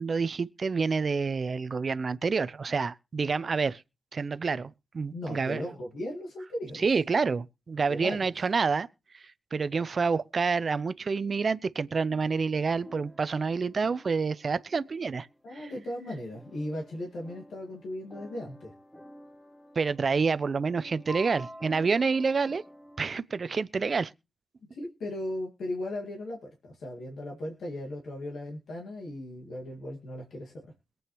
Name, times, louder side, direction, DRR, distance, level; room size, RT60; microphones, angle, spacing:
voice 1, 0.0-3.8 4.1-5.6 6.7-8.9 9.1-15.3 15.5-15.7 19.8-22.6 23.0-24.1, right 4 dB, 55° right, 0.5 m, -28 dB
voice 2, 5.1-6.9 7.9-8.3 15.4-18.7 24.6-30.5, left 1 dB, 75° left, 2.2 m, -37 dB
sound 1, 12.8-23.2, equal, 5° left, 2.1 m, -49 dB
22.0 x 7.8 x 3.2 m
supercardioid pair, 40°, 0 cm